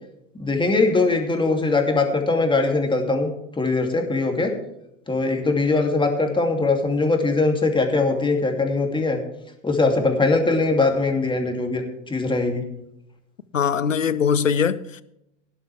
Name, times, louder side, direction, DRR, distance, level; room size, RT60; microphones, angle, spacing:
voice 1, 0.4-3.3 3.6-4.5 5.1-9.2 9.6-12.6, left 3 dB, 15° left, 2.7 m, -21 dB
voice 2, 13.5-15.0, left 7 dB, 90° left, 0.7 m, -21 dB
17.5 x 11.0 x 3.4 m
figure-of-eight pair, 85°, 38 cm